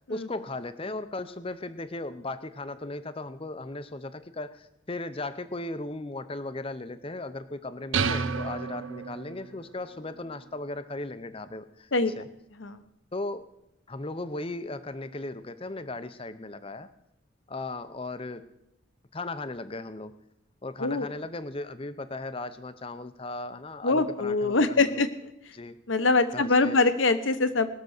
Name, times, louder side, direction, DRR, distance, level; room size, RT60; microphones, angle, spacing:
voice 1, 0.1-11.9 12.2-12.3 13.1-13.5 13.9-16.9 17.5-18.5 19.1-20.1 20.6-25.0 25.5-25.8 26.3-26.8, left 2 dB, 25° left, 12 dB, 0.7 m, -37 dB
sound 1, 7.9-9.6, right 5 dB, 75° right, 0.6 m, -30 dB
voice 2, 23.8-25.1 25.9-27.7, left 3 dB, 70° left, 11 dB, 1.0 m, -23 dB
19.5 x 6.7 x 6.6 m, 0.83 s
head